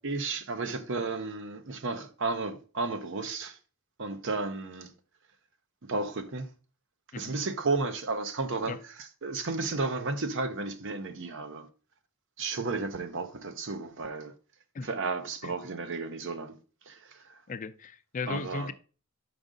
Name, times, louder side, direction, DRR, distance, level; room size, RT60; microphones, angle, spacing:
voice 1, 0.0-3.6 4.0-4.9 5.9-6.5 7.1-11.7 12.4-14.3 14.8-16.6 16.9-17.4 18.3-18.7, right 3 dB, 60° right, 0.7 m, -33 dB
voice 2, 17.5-18.7, left 4 dB, 35° left, 0.4 m, -36 dB
6.2 x 5.2 x 3.8 m
head